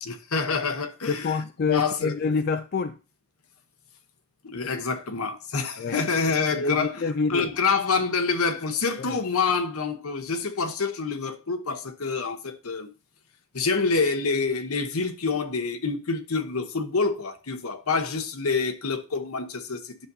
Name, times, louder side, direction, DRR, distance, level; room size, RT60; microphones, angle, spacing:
voice 1, 0.0-1.4 1.7-2.1 4.4-6.9 7.3-12.9 13.5-20.1, left 4 dB, 80° left, 1.0 m, -27 dB
voice 2, 1.1-3.0 5.8-6.0 6.5-7.5 9.0-9.2, left 4 dB, 45° left, 0.3 m, -27 dB
10.0 x 6.7 x 2.7 m
head